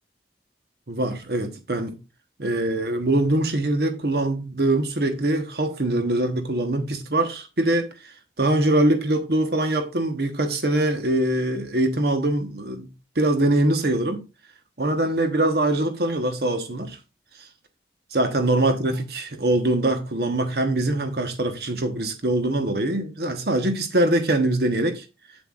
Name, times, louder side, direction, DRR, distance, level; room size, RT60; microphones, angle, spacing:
voice 1, 0.9-2.0 2.4-7.9 8.4-12.9 13.2-14.2 14.8-17.0 18.1-25.0, right 1 dB, 60° right, 1.1 m, -23 dB
8.1 x 7.5 x 2.4 m
head